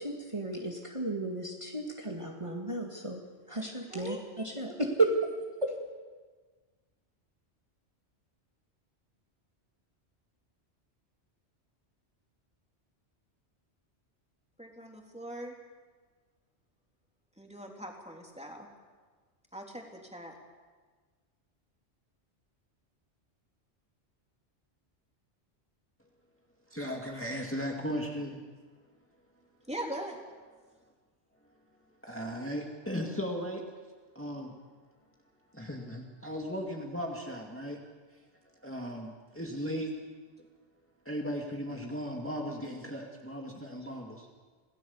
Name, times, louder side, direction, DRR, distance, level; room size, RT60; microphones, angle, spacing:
voice 1, 0.0-3.2 3.5-4.2 4.4-5.1 5.6-5.7, right 2 dB, 25° right, -1 dB, 2.1 m, -33 dB
voice 2, 3.6-4.3 14.6-15.5 17.4-18.7 19.5-20.3 29.7-30.2, right 1 dB, 5° right, 0 dB, 3.3 m, -41 dB
voice 3, 26.7-28.4 32.0-33.6 34.1-34.5 35.5-37.8 38.6-39.9 41.1-44.3, equal, 10° left, 0 dB, 2.1 m, -36 dB
27.0 x 17.5 x 7.1 m, 1.4 s
omnidirectional pair, 1.2 m